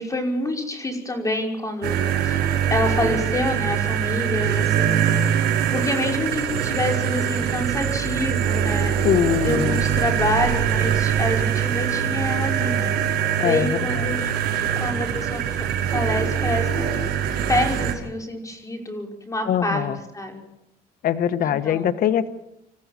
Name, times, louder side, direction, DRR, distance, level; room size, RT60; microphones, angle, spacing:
voice 1, 0.0-5.1 5.7-9.0 9.3-12.9 13.4-14.2 14.8-16.8 17.5-19.8 20.1-20.4 21.4-21.9, left 1 dB, 20° left, 2 dB, 5.4 m, -27 dB
sound 1, 1.8-17.9, right 8 dB, 80° right, 5.6 m, -23 dB
voice 2, 9.0-9.8 13.4-14.1 19.5-20.0 21.0-22.3, left 9 dB, 60° left, 11 dB, 1.2 m, -22 dB
28.0 x 14.5 x 7.5 m, 0.84 s
cardioid pair, 110°, 17 cm